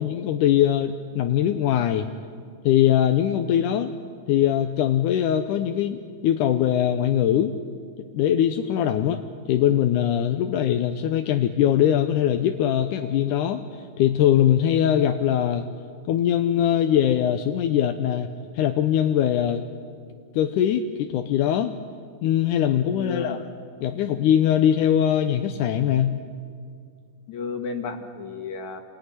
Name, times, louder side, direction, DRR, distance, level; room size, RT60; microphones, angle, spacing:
voice 1, 0.0-2.1 2.6-3.9 4.3-7.6 8.1-9.2 9.5-13.6 14.0-15.7 16.1-18.3 18.5-19.6 20.3-21.7 22.2-23.4 23.8-26.2, left 10 dB, 75° left, 6 dB, 2.2 m, -21 dB
voice 2, 22.9-23.5 27.3-28.8, left 5 dB, 60° left, 6 dB, 3.1 m, -32 dB
28.5 x 21.0 x 9.9 m, 2.2 s
omnidirectional pair, 4.1 m